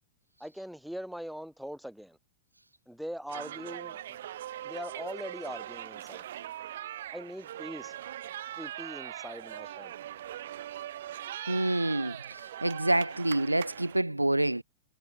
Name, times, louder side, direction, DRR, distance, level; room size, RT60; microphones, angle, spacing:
voice 1, 0.4-2.2 2.9-4.2 4.6-6.3 7.1-8.0 8.6-9.9, equal, ahead, 7.4 m, -41 dB
sound 1, 3.3-14.0, right 12 dB, 60° right, 6.7 m, -41 dB
voice 2, 11.5-14.6, right 1 dB, 85° right, 1.6 m, -27 dB
figure-of-eight pair, 90°, 0 cm